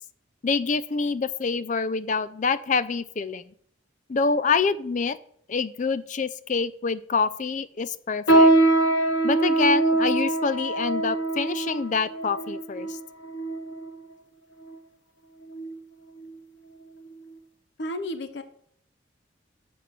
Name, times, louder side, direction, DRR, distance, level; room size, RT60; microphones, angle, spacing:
voice 1, 0.4-3.4 4.1-5.2 5.5-8.5 9.2-13.0, left 4 dB, 40° left, 16 dB, 0.4 m, -26 dB
sound 1, 8.3-13.9 14.6-14.8 15.5-15.8 16.2-16.3 17.1-17.2, right 2 dB, 85° left, 1.2 m, -23 dB
voice 2, 17.8-18.4, left 1 dB, 65° left, 10 dB, 0.8 m, -32 dB
6.9 x 6.0 x 7.4 m, 0.64 s
head